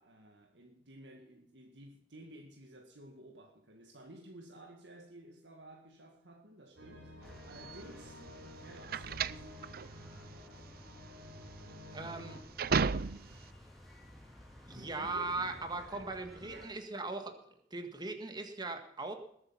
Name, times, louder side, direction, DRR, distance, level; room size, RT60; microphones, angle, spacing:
voice 1, 0.0-8.3 8.6-9.6 12.0-13.4 14.7-16.8, right 1 dB, 70° right, 1.9 m, -54 dB
sound 1, 6.8-12.4, left 1 dB, 85° right, 4.2 m, -52 dB
sound 2, 7.2-16.7, left 1 dB, ahead, 4.5 m, -55 dB
sound 3, 7.5-13.5, right 5 dB, 55° right, 0.5 m, -35 dB
voice 2, 11.9-12.4 14.7-17.4 17.7-19.1, right 3 dB, 25° right, 1.8 m, -39 dB
20.5 x 9.0 x 5.8 m
head